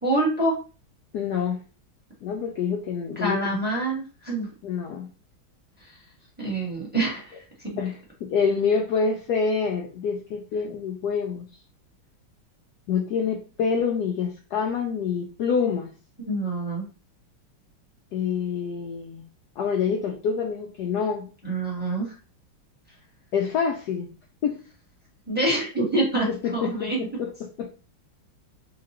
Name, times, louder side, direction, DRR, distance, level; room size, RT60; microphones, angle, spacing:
voice 1, 0.0-0.6 3.1-4.5 5.8-6.0 6.4-7.8 16.3-16.9 21.4-22.1 25.3-27.0, right 2 dB, 5° right, -4 dB, 1.1 m, -26 dB
voice 2, 1.1-1.6 2.2-3.4 4.6-5.1 7.8-11.4 12.9-15.9 18.1-19.3 19.6-21.3 23.3-24.1 24.4-24.6 26.3-27.7, left 6 dB, 80° left, 2 dB, 0.9 m, -26 dB
4.0 x 2.8 x 2.9 m, 0.35 s
omnidirectional pair, 2.3 m